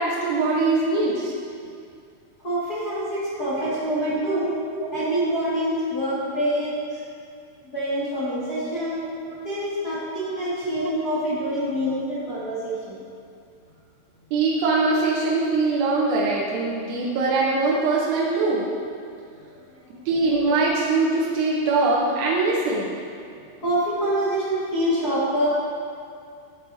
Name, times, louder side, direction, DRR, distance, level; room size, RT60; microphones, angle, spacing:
voice 1, 0.0-1.3 3.4-3.5 4.7-4.9 10.6-10.7 14.3-18.7 20.1-23.0, right 3 dB, 75° right, -5 dB, 2.9 m, -22 dB
voice 2, 2.4-4.6 4.9-7.0 7.7-9.0 9.4-13.0 19.3-19.5 23.4-25.5, right 1 dB, 55° left, -12 dB, 1.0 m, -26 dB
11.5 x 8.0 x 2.7 m, 2.3 s
omnidirectional pair, 5.1 m